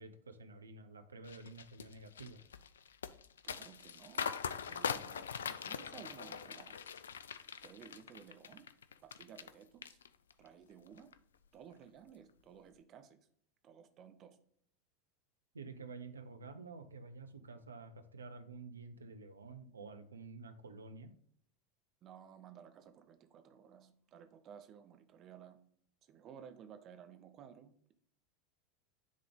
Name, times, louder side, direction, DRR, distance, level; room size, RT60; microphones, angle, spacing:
voice 1, 0.0-2.4 15.5-21.1, right 4 dB, 85° right, 8 dB, 0.7 m, -50 dB
sound 1, 1.3-9.5 9.8-10.5 10.9-11.1, left 7 dB, 75° left, 0.4 m, -42 dB
voice 2, 3.4-6.8 7.6-8.7 9.0-10.0 10.4-11.1 11.5-13.2 13.6-14.4 22.0-25.6 26.0-27.9, right 8 dB, 40° right, 8 dB, 0.9 m, -56 dB
9.9 x 3.8 x 3.7 m, 0.63 s
figure-of-eight pair, 85°, 0 cm